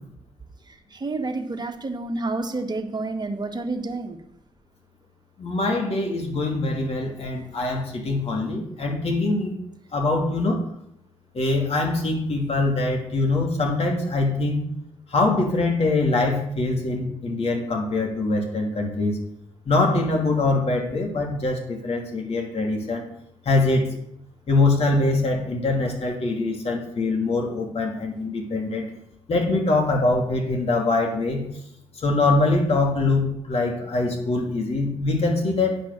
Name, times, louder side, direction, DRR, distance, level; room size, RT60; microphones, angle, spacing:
voice 1, 0.7-4.2, right 3 dB, 35° right, 4 dB, 1.6 m, -29 dB
voice 2, 5.4-9.6 9.9-10.6 11.3-14.6 15.1-19.2 19.7-23.0 23.4-23.9 24.5-28.8 29.3-31.4 32.0-35.8, left 2 dB, 55° left, 1 dB, 2.8 m, -23 dB
9.8 x 5.9 x 6.7 m, 0.74 s
supercardioid pair, 60°, 12 cm